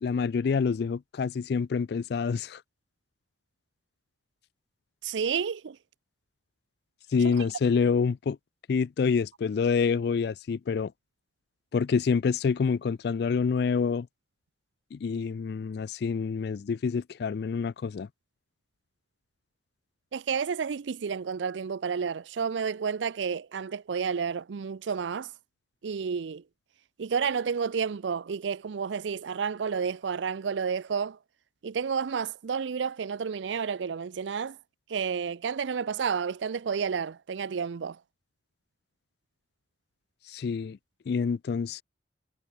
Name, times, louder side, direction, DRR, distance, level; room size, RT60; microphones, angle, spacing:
voice 1, 0.0-2.6 7.1-8.4 8.7-10.9 11.7-14.1 14.9-18.1 40.3-40.8 41.1-41.8, left 5 dB, 60° left, 0.3 m, -27 dB
voice 2, 5.0-5.8 20.1-25.3 25.8-26.4 27.0-31.2 31.6-34.6 34.9-38.0, right 6 dB, 85° right, 0.5 m, -30 dB
head